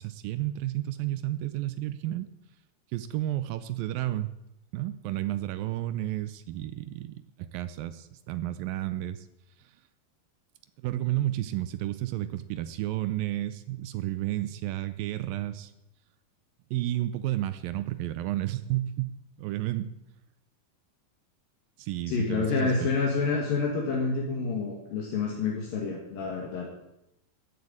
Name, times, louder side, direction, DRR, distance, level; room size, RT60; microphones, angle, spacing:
voice 1, 0.0-2.3 2.9-4.3 4.7-9.3 10.8-15.7 16.7-19.9 21.8-22.9, right 14 dB, 80° right, 13 dB, 2.3 m, -32 dB
voice 2, 22.1-26.7, left 4 dB, 70° left, 0 dB, 3.4 m, -28 dB
14.0 x 7.8 x 8.7 m, 0.84 s
omnidirectional pair, 4.4 m